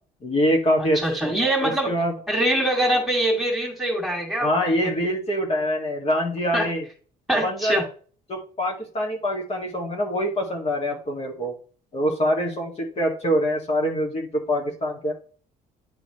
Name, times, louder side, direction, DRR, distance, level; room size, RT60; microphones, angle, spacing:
voice 1, 0.2-2.1 4.4-6.9 7.4-7.8 8.3-11.5 11.9-15.1, equal, 35° left, 0 dB, 2.0 m, -25 dB
voice 2, 0.8-1.9 2.3-4.7 6.5-6.7 7.3-7.8, right 1 dB, ahead, 0 dB, 2.7 m, -23 dB
10.5 x 3.8 x 3.1 m, 0.41 s
cardioid pair, 110°, 17 cm